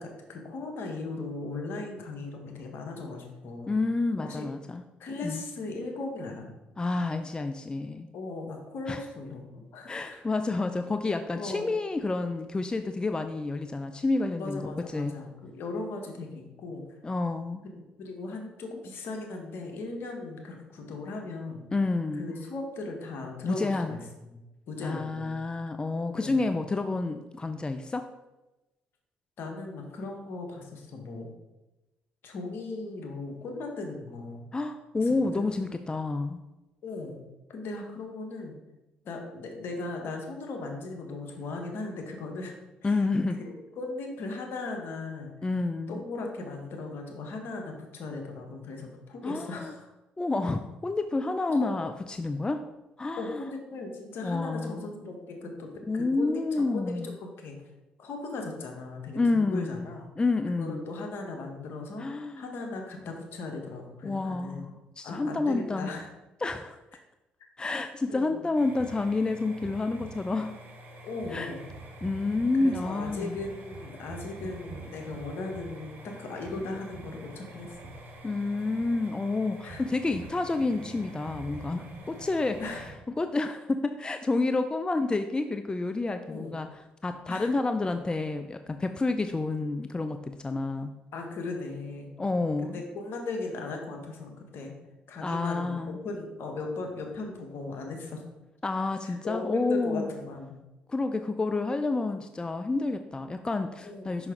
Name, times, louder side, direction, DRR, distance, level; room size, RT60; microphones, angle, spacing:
voice 1, 0.0-3.8 4.2-4.5 5.0-6.5 8.1-10.2 11.3-11.7 14.4-16.8 18.0-21.6 22.1-24.4 24.7-25.4 26.0-26.5 29.4-31.3 32.2-34.4 35.0-35.4 36.8-37.2 37.5-38.6 39.0-42.5 42.8-43.0 43.4-45.3 45.9-49.9 51.5-51.7 53.2-57.5 58.0-60.1 60.6-64.7 65.0-66.1 68.1-68.4 71.0-71.6 72.6-77.8 79.6-79.8 82.6-82.8 86.3-86.6 87.3-87.5 91.1-92.1 92.6-94.7 95.1-98.2 99.0-100.5 103.8-104.2, left 3 dB, 65° left, 2 dB, 1.4 m, -38 dB
voice 2, 3.7-4.8 5.2-5.4 6.8-8.1 8.9-9.0 9.9-15.1 17.0-17.6 21.7-22.3 23.4-24.0 24.8-28.1 34.5-36.4 42.8-43.4 45.4-46.0 49.2-49.7 50.2-52.6 53.0-53.4 54.2-54.8 55.9-57.1 59.2-59.8 60.2-60.9 62.0-62.4 64.0-65.9 66.4-66.8 67.6-70.5 71.3-71.5 72.0-73.4 78.2-82.6 83.2-86.7 87.0-90.9 92.2-92.8 95.2-96.0 98.6-100.1 100.9-104.3, left 3 dB, 20° left, 8 dB, 0.4 m, -29 dB
sound 1, 68.5-82.9, right 2 dB, 55° right, 1.6 m, -45 dB
5.9 x 5.6 x 3.8 m, 1.0 s
hypercardioid pair, 55°, 4 cm